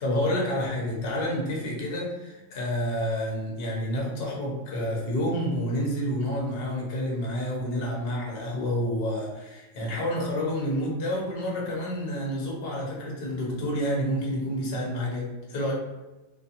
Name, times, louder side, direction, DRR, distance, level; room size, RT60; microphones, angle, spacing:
voice 1, 0.0-15.7, equal, 55° left, -2 dB, 0.9 m, -29 dB
2.5 x 2.5 x 2.7 m, 1.1 s
omnidirectional pair, 1.4 m